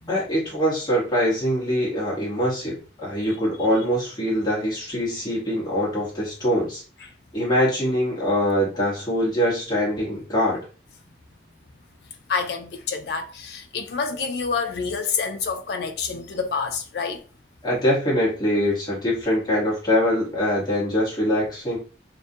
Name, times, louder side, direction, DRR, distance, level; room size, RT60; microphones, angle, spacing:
voice 1, 0.1-6.8 7.3-10.6 17.6-21.8, equal, 25° left, 1.0 m, -23 dB
voice 2, 12.3-17.2, left 5 dB, 65° left, 0.4 m, -28 dB
2.3 x 2.1 x 2.6 m
head